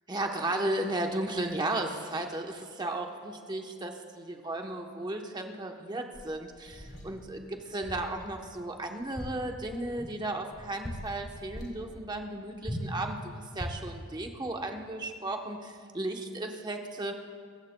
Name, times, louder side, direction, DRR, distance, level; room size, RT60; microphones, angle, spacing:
voice 1, 0.1-17.1, right 1 dB, 20° right, 3 dB, 0.9 m, -35 dB
sound 1, 6.1-7.1 7.8-8.2 8.5-8.6 9.0-10.2 10.5-11.2 11.5-11.8 12.6-13.0 13.5-13.9, equal, 20° left, 2.6 m, -39 dB
24.5 x 15.0 x 2.2 m, 2.1 s
head